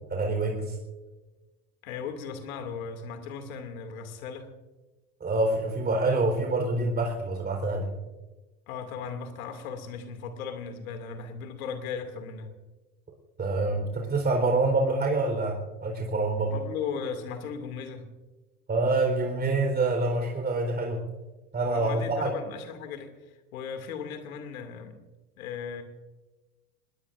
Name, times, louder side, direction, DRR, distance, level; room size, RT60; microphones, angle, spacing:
voice 1, 0.1-0.8 5.2-7.9 13.4-16.6 18.7-21.0 21.5-22.3, right 2 dB, 20° right, 2 dB, 4.2 m, -26 dB
voice 2, 1.8-4.5 8.7-12.5 16.5-18.1 21.7-23.1 23.5-25.0 25.4-25.8, left 6 dB, 65° left, 8 dB, 2.5 m, -37 dB
26.0 x 21.0 x 2.6 m, 1.2 s
figure-of-eight pair, 80°, 45 cm